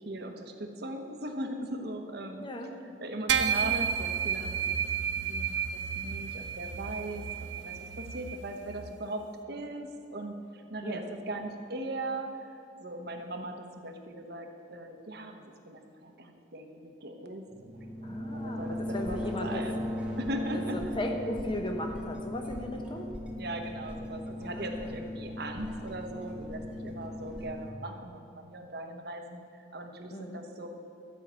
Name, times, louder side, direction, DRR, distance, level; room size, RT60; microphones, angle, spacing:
voice 1, 0.0-2.4 2.8-4.6 5.2-9.2 9.5-17.8 18.2-19.9 20.2-21.0 23.4-30.7, right 1 dB, 55° right, 5 dB, 1.1 m, -39 dB
voice 2, 2.4-2.8 10.8-11.1 18.0-19.6 20.5-23.1 24.4-24.9 30.1-30.4, left 1 dB, 25° left, 3 dB, 1.1 m, -37 dB
sound 1, 3.3-8.9, right 7 dB, 70° right, 0.6 m, -32 dB
sound 2, 17.5-27.7, left 1 dB, 5° right, 1.1 m, -37 dB
13.0 x 5.7 x 8.3 m, 2.6 s
head